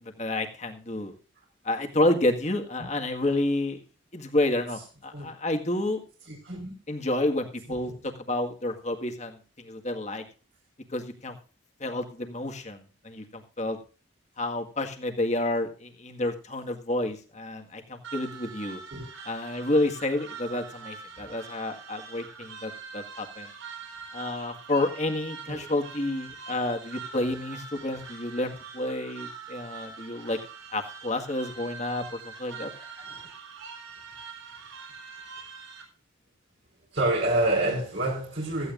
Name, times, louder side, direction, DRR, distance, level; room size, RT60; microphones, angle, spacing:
voice 1, 0.0-1.1 1.6-3.8 4.1-6.0 6.9-10.2 10.9-11.4 11.8-13.8 14.4-18.8 19.3-23.5 24.1-30.4 30.7-32.7, left 1 dB, 35° left, 1.8 m, -30 dB
voice 2, 6.3-6.7 7.7-7.9 18.9-19.0 25.5-25.7 27.9-28.0 33.0-33.3 36.9-38.7, right 2 dB, 60° right, 4.7 m, -28 dB
sound 1, 18.0-35.8, right 5 dB, 85° right, 4.4 m, -44 dB
16.5 x 14.5 x 2.6 m
head